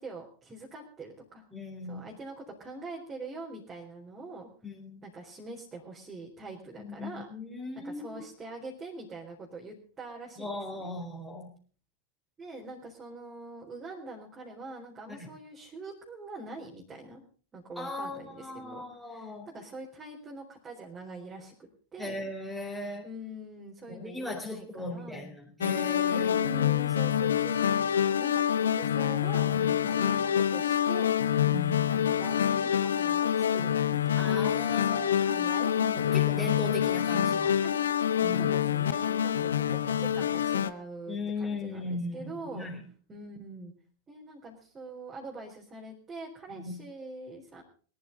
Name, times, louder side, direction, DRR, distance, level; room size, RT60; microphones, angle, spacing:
voice 1, 0.0-1.4 1.9-4.5 5.0-7.3 7.8-10.9 12.4-17.2 17.5-22.3 23.0-25.3 26.1-31.1 31.9-34.4 34.7-35.8 36.1-36.7 37.6-37.7 38.3-42.7 43.1-43.7 44.1-47.6, right 2 dB, 20° right, -2 dB, 4.0 m, -44 dB
voice 2, 1.5-2.1 4.6-5.0 6.8-8.2 10.4-11.5 15.1-15.3 17.8-19.5 22.0-23.1 23.9-26.5 29.8-29.9 34.2-35.5 35.8-37.6 38.2-38.5 41.1-42.8 46.5-46.8, left 2 dB, 5° right, 2 dB, 4.2 m, -38 dB
sound 1, 25.6-40.7, left 9 dB, 65° left, 0.9 m, -26 dB
22.0 x 13.0 x 4.0 m, 0.42 s
figure-of-eight pair, 90°, 0 cm